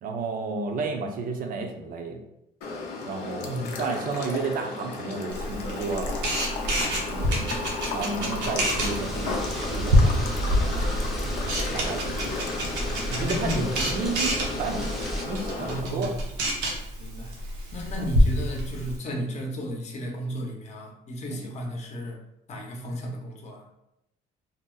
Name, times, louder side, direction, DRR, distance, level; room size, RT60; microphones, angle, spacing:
voice 1, 0.0-2.2 3.0-6.3 7.0-9.3 9.7-10.2 10.7-10.9 11.7-12.5 13.1-14.9 15.3-16.1 21.3-21.4, right 4 dB, 55° right, 4 dB, 0.5 m, -32 dB
sound 1, 2.6-15.8, left 3 dB, 80° left, 0.5 m, -34 dB
voice 2, 3.4-3.9 13.1-13.9 15.6-16.1 17.0-17.3 17.7-22.2 22.5-23.6, equal, 40° left, 1 dB, 0.7 m, -33 dB
Camera, 5.3-19.0, equal, 90° right, 0.8 m, -27 dB
sound 2, 8.7-15.3, equal, ahead, 0.5 m, -35 dB
2.7 x 2.0 x 3.7 m, 0.83 s
cardioid pair, 110°, 17 cm